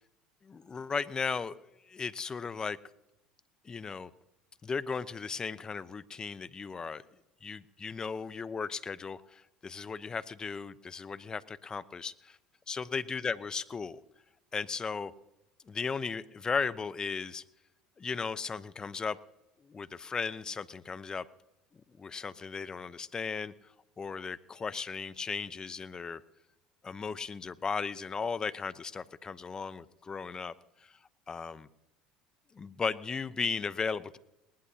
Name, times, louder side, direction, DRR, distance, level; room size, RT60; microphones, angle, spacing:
voice 1, 0.4-1.6 1.9-2.8 3.6-4.1 4.6-7.0 7.4-12.4 12.7-14.0 14.5-15.1 15.7-17.4 18.0-19.2 19.7-21.2 22.0-23.5 24.0-26.2 26.8-30.5 31.3-31.7 32.5-34.2, left 5 dB, 30° left, 16 dB, 0.8 m, -36 dB
20.0 x 19.0 x 2.8 m, 0.90 s
hypercardioid pair, 70°, 3 cm